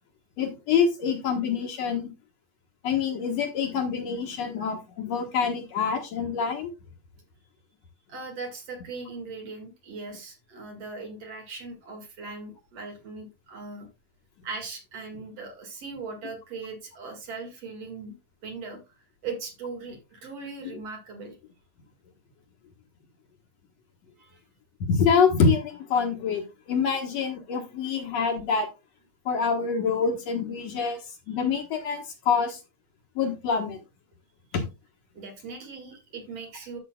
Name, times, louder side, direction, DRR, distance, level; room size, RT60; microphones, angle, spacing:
voice 1, 0.4-2.1 2.8-6.7 24.9-28.7 29.3-31.0 31.3-32.6 33.2-33.8 34.5-34.6, left 6 dB, 60° left, 3 dB, 2.3 m, -26 dB
voice 2, 8.1-13.9 14.4-18.1 18.4-21.4 24.2-24.4 30.8-31.0 35.1-36.8, right 4 dB, 55° right, 3 dB, 3.0 m, -39 dB
13.0 x 6.0 x 2.3 m, 0.27 s
omnidirectional pair, 3.6 m